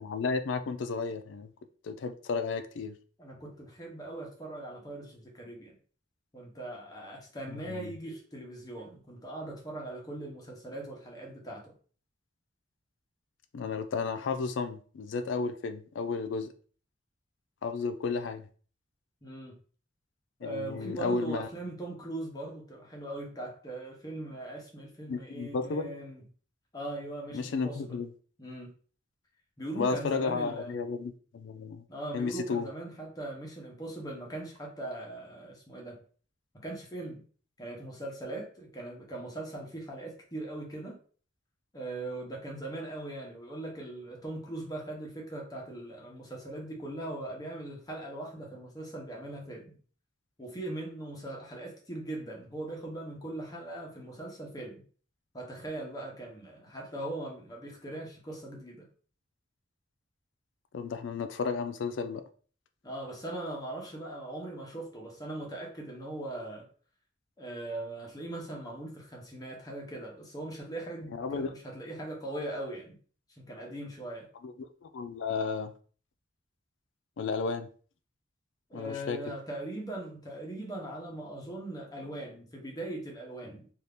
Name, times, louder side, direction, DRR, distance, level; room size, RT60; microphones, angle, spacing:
voice 1, 0.0-1.5 1.8-2.9 7.5-7.9 13.5-16.5 17.6-18.5 20.4-21.5 25.1-25.9 27.3-28.1 29.7-31.8 32.1-32.7 60.7-62.2 71.1-71.5 74.4-75.7 77.2-77.7 78.7-79.2, left 4 dB, 75° left, 0.4 m, -33 dB
voice 2, 3.2-5.8 6.3-11.7 19.2-19.6 20.4-26.2 26.7-28.0 28.4-28.7 29.6-30.7 31.9-36.0 36.5-37.2 37.6-41.0 41.7-49.8 50.4-54.8 55.3-58.9 62.8-66.7 67.4-73.0 73.3-74.3 78.7-83.7, right 1 dB, 20° left, 0.8 m, -40 dB
2.7 x 2.4 x 3.4 m
head